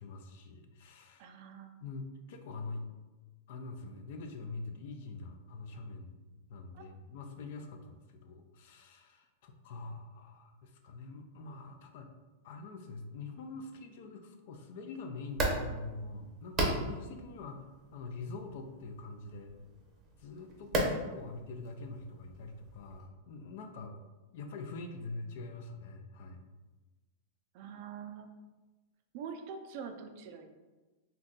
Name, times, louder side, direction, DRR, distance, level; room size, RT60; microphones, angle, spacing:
voice 1, 0.0-1.3 1.8-2.8 3.5-6.1 6.5-12.1 12.4-19.5 20.2-23.9 24.3-26.5, left 3 dB, 60° left, 5 dB, 0.4 m, -44 dB
voice 2, 1.2-1.7 6.7-6.8 27.5-28.3 29.1-30.5, right 6 dB, 50° right, 6 dB, 0.4 m, -44 dB
sound 1, 15.2-23.1, right 1 dB, 25° right, 0.7 m, -37 dB
2.6 x 2.2 x 3.8 m, 1.2 s
supercardioid pair, 140°, 0 cm